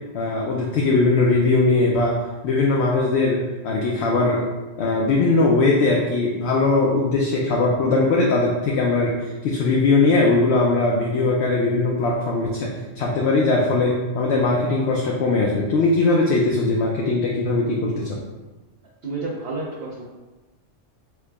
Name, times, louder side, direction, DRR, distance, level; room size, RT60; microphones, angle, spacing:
voice 1, 0.1-2.2 2.4-4.4 4.8-18.2, left 3 dB, 65° left, -2 dB, 0.8 m, -20 dB
voice 2, 19.0-20.0, right 3 dB, 55° right, -6 dB, 0.9 m, -30 dB
4.6 x 2.1 x 4.5 m, 1.2 s
omnidirectional pair, 1.3 m